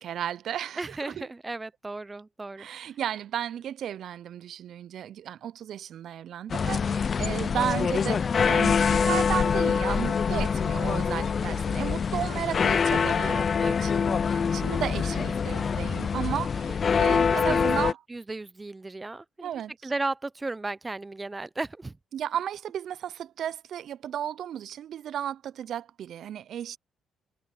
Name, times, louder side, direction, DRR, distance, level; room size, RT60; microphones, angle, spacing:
voice 1, 0.0-1.3 2.6-18.0 19.4-19.7 22.1-26.8, right 10 dB, 70° right, 0.4 m, -34 dB
voice 2, 0.8-2.9 6.6-7.1 13.6-13.9 14.3-14.5 16.9-17.0 17.3-19.5 19.8-22.0, right 2 dB, 20° right, 0.6 m, -36 dB
sound 1, 6.5-17.9, left 6 dB, 45° left, 0.4 m, -25 dB
cardioid pair, 90°, 0 cm